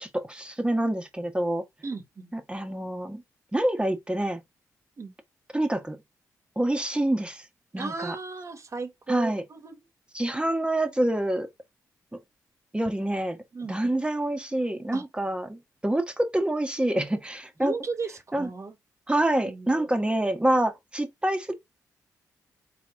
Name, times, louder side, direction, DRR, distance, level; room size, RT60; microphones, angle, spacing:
voice 1, 0.0-1.6 2.3-3.2 3.5-4.4 5.5-6.0 6.5-7.4 7.7-8.1 9.1-9.4 10.1-11.5 12.1-12.2 12.7-13.4 13.7-17.7 18.3-18.5 19.1-21.5, right 1 dB, 15° right, 1.3 m, -26 dB
voice 2, 1.8-2.3 5.0-5.1 7.7-9.8 13.5-14.0 14.9-15.0 17.6-18.7 19.5-19.9, right 4 dB, 45° right, 1.4 m, -35 dB
4.1 x 3.0 x 3.6 m
supercardioid pair, 50°, 7 cm